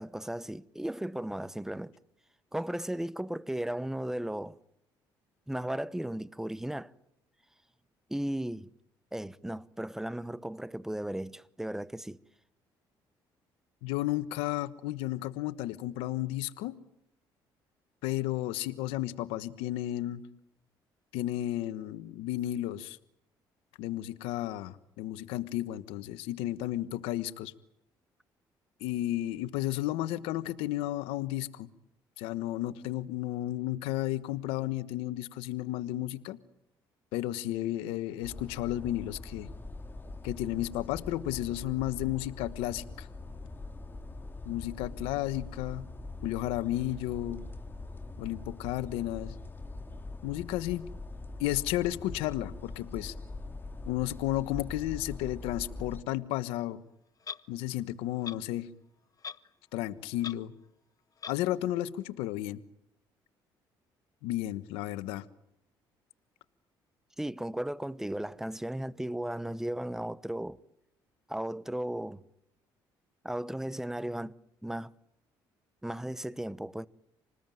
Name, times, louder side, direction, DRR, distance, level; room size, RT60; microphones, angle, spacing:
voice 1, 0.0-1.9 2.5-4.6 5.5-6.9 8.1-8.7 9.1-12.2 67.2-70.6 71.3-72.2 73.2-74.3 74.6-74.9 75.8-76.9, right 1 dB, 5° right, 1.1 m, -35 dB
voice 2, 13.8-16.8 18.0-20.2 21.1-23.0 23.8-27.5 28.8-31.7 32.2-36.4 37.1-39.5 40.2-43.1 44.4-45.8 46.2-47.4 48.2-49.4 50.2-50.9 51.4-53.1 53.9-56.8 57.5-58.7 59.7-60.5 61.3-62.6 64.2-65.2, left 14 dB, 90° left, 1.2 m, -33 dB
sound 1, 38.2-56.0, left 2 dB, 20° left, 2.2 m, -43 dB
Clock, 57.2-57.4 58.2-58.4 59.2-59.5 59.8-59.9 60.2-60.4 61.2-61.4, left 6 dB, 40° left, 1.2 m, -40 dB
27.5 x 20.0 x 9.3 m
supercardioid pair, 75°, 9 cm